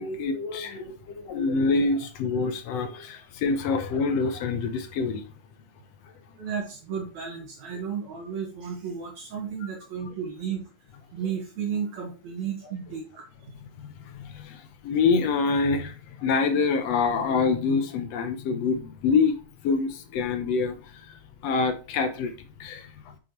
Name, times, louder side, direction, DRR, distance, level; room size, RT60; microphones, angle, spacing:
voice 1, 0.0-5.3 13.8-19.4 19.6-22.3 22.6-23.1, left 4 dB, 70° left, 1.8 m, -26 dB
voice 2, 6.4-10.6 11.1-13.5, right 7 dB, 70° right, 3.0 m, -33 dB
8.8 x 6.2 x 3.2 m
omnidirectional pair, 3.4 m